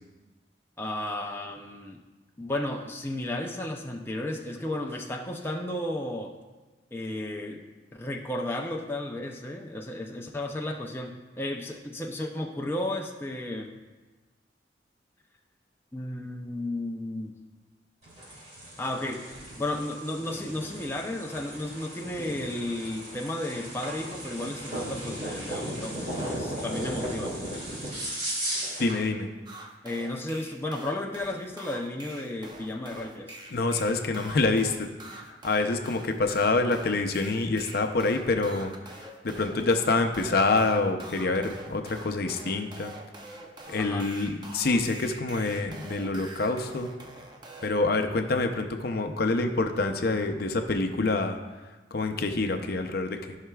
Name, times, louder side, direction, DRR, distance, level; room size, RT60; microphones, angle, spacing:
voice 1, 0.8-2.0 2.4-6.3 6.9-7.6 7.9-13.8 15.9-17.4 18.8-19.3 19.6-27.4 29.8-33.4 43.8-44.1, left 1 dB, 15° left, 1 dB, 0.5 m, -33 dB
sound 1, 18.0-29.0, right 1 dB, 40° right, 2.5 m, -36 dB
voice 2, 28.8-29.3 33.5-35.2 35.4-38.7 39.2-42.9 43.7-46.9 47.6-51.4 51.9-53.4, left 3 dB, 55° left, 6 dB, 0.6 m, -26 dB
sound 2, 29.5-47.7, right 2 dB, 25° right, 0.7 m, -45 dB
14.0 x 5.7 x 2.3 m, 1.2 s
head